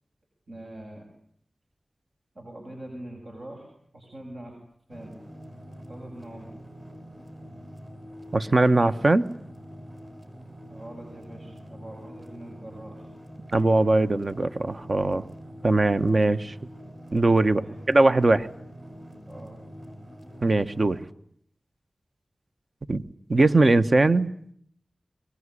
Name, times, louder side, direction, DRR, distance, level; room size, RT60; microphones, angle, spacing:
voice 1, 0.5-1.1 2.3-3.7 3.9-4.6 4.9-5.2 5.7-6.6 10.7-13.1 17.5-18.0 19.3-19.6, right 1 dB, 70° right, 1 dB, 7.8 m, -43 dB
sound 1, 4.9-21.0, equal, 35° right, 6.5 m, -45 dB
voice 2, 8.3-9.3 13.5-15.2 15.6-16.5 17.1-17.6 17.9-18.5 20.4-21.0 22.9-23.0 23.3-24.3, right 2 dB, 55° right, 10 dB, 1.3 m, -20 dB
24.5 x 22.5 x 9.9 m, 0.66 s
cardioid pair, 45°, 0 cm